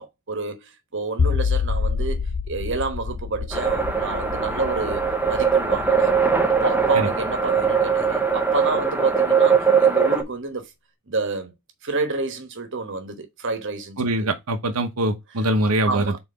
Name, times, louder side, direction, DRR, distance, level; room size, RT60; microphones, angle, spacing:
voice 1, 0.0-5.0 5.3-6.1 6.6-10.7 11.1-11.5 11.8-14.3 15.9-16.2, right 3 dB, 55° right, 1.2 m, -29 dB
sound 1, 1.2-8.4, left 5 dB, 70° left, 0.6 m, -28 dB
sound 2, 3.5-10.2, right 5 dB, 10° right, 0.8 m, -21 dB
voice 2, 14.0-16.1, right 1 dB, 90° right, 1.0 m, -23 dB
4.2 x 4.2 x 5.6 m
head